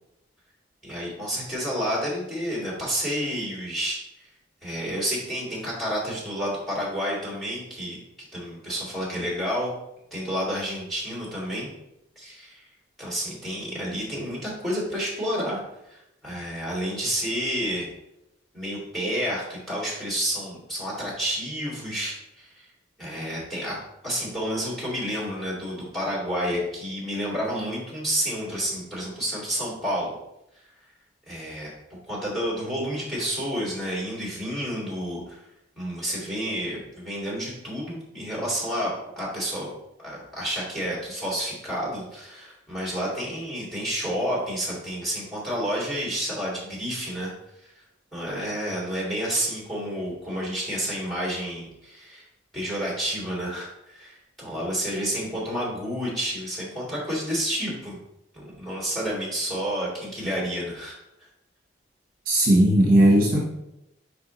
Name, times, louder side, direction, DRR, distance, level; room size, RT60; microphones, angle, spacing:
voice 1, 0.8-4.3 4.6-8.0 8.3-9.7 10.1-11.7 12.2-12.6 13.0-17.9 18.5-22.7 23.0-23.7 24.0-30.1 31.3-35.5 35.8-39.7 40.0-47.3 47.6-47.7 48.1-52.2 52.5-58.0 58.3-61.0, equal, ahead, -5 dB, 2.3 m, -30 dB
voice 2, 62.3-63.4, right 1 dB, 50° right, -2 dB, 0.9 m, -17 dB
5.2 x 4.6 x 4.0 m, 0.85 s
head